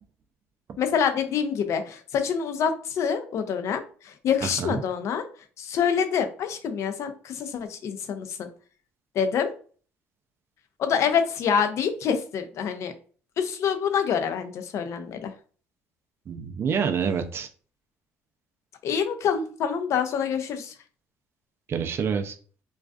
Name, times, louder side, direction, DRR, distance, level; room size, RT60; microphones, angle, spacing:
voice 1, 0.8-5.2 5.6-8.5 9.1-9.5 10.8-12.9 13.4-15.3 18.8-20.7, left 7 dB, 60° left, 8 dB, 0.4 m, -26 dB
voice 2, 4.4-4.8 16.3-17.5 21.7-22.3, right 6 dB, 45° right, 6 dB, 0.4 m, -27 dB
2.4 x 2.3 x 2.2 m, 0.42 s
supercardioid pair, 80°, 6 cm